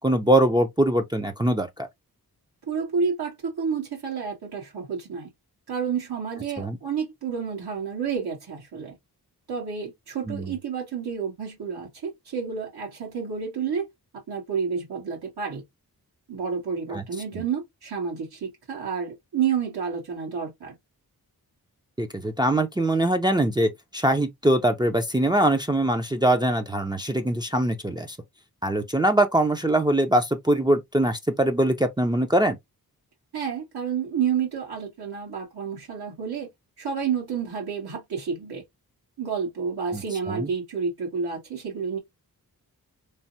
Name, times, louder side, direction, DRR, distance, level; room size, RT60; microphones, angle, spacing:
voice 1, 0.0-1.9 6.6-6.8 10.3-10.5 16.9-17.0 17.3-17.4 22.0-28.2 28.6-32.6 39.9-40.5, right 1 dB, 10° right, 0.4 m, -23 dB
voice 2, 2.7-5.3 5.7-9.0 9.5-13.9 14.1-15.6 16.3-20.8 33.3-36.5 36.8-38.6 39.2-42.0, right 6 dB, 90° right, 1.6 m, -30 dB
3.2 x 2.0 x 2.6 m
wide cardioid pair, 90°, 37 cm